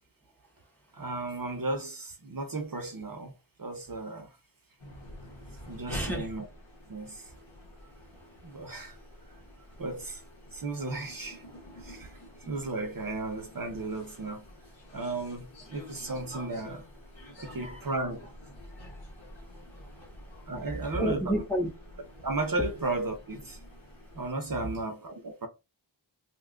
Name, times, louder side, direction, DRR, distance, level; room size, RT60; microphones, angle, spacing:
voice 1, 0.4-0.7 5.9-6.3 7.8-8.2 8.6-9.0 9.6-9.7 17.3-17.9 18.8-20.4 20.9-21.7, right 1 dB, 5° left, 0.8 m, -35 dB
voice 2, 0.9-3.3 3.6-4.3 5.7-6.4 6.9-7.2 8.4-9.0 9.8-10.2 10.5-11.4 11.8-12.1 12.5-14.4 14.9-16.8 17.4-18.3 20.5-21.4 22.2-23.6 24.1-25.5, right 2 dB, 50° right, 0.7 m, -34 dB
sound 1, 4.8-24.3, equal, 90° left, 1.2 m, -48 dB
2.8 x 2.3 x 3.6 m
wide cardioid pair, 55°, 45 cm